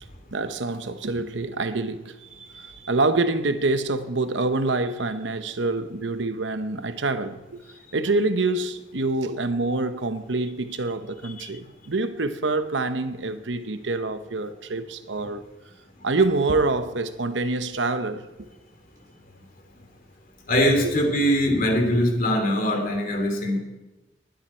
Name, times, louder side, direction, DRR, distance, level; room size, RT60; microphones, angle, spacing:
voice 1, 0.3-7.6 7.9-15.4 16.0-18.2 20.8-20.9, right 3 dB, 75° right, 0.9 m, -26 dB
voice 2, 20.5-23.6, equal, 50° left, 2.8 m, -22 dB
19.5 x 10.5 x 4.4 m
head